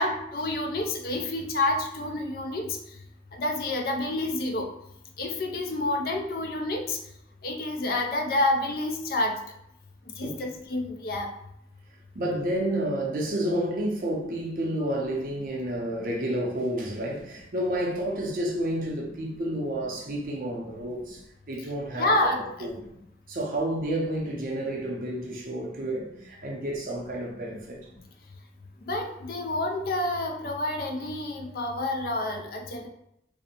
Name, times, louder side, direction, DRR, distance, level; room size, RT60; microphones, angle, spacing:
voice 1, 0.0-2.7 3.3-4.7 5.2-7.0 7.4-9.3 10.2-11.3 22.0-22.4 28.9-32.9, left 2 dB, 55° left, 0.4 m, -28 dB
voice 2, 12.1-22.3 22.6-22.8 23.3-27.8, right 1 dB, 50° right, 0.5 m, -30 dB
2.5 x 2.0 x 2.7 m
head